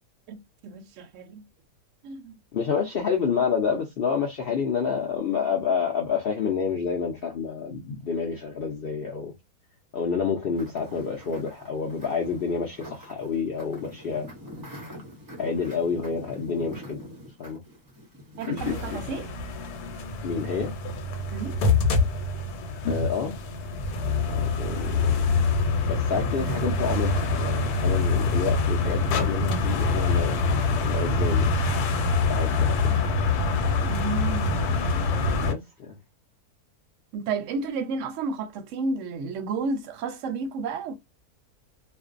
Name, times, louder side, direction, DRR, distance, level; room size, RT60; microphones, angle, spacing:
voice 1, 0.3-1.4 2.0-2.3 18.4-19.3 21.3-21.6 32.9-33.1 33.8-35.5 37.1-40.9, right 4 dB, 65° right, 0.8 m, -32 dB
voice 2, 2.5-9.3 9.9-14.3 15.4-17.0 17.4-17.6 18.5-19.1 20.2-20.7 22.8-23.3 24.3-25.2 25.9-30.4 30.8-31.5 32.3-32.8 35.4-36.0, left 6 dB, 65° left, 0.5 m, -28 dB
sound 1, 10.6-19.2, equal, 30° right, 0.4 m, -44 dB
sound 2, 18.6-35.5, left 3 dB, 90° left, 1.1 m, -25 dB
2.5 x 2.1 x 2.4 m
omnidirectional pair, 1.6 m